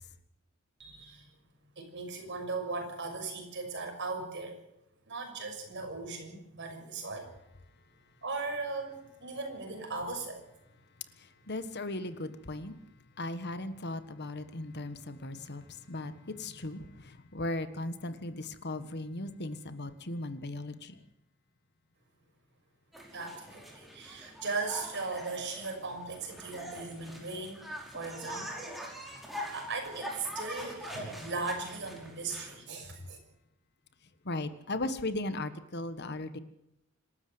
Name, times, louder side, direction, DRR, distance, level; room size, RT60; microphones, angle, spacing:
voice 1, 0.8-1.3 1.8-4.6 5.1-7.3 8.2-10.4 23.1-27.6 27.9-28.7 29.5-33.2, right 3 dB, 60° right, 6.3 m, -38 dB
voice 2, 11.5-12.7 13.2-15.6 15.9-20.9 34.2-36.4, left 2 dB, 55° left, 1.5 m, -37 dB
sound 1, 22.9-32.5, equal, ahead, 5.2 m, -44 dB
26.5 x 13.0 x 7.9 m
head